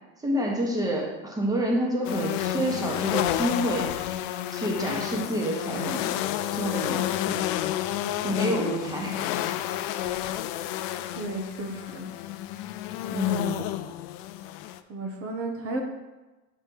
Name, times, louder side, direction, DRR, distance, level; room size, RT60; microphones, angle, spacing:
voice 1, 0.2-3.9 4.5-6.1 6.5-7.4 8.2-9.2 13.1-13.6, equal, 10° right, -1 dB, 1.3 m, -28 dB
sound 1, 2.0-14.8, left 13 dB, 70° left, 0.5 m, -30 dB
voice 2, 11.2-12.1 14.9-15.8, right 2 dB, 45° right, 3 dB, 0.9 m, -33 dB
7.9 x 3.3 x 4.6 m, 1.1 s
cardioid pair, 130°, 33 cm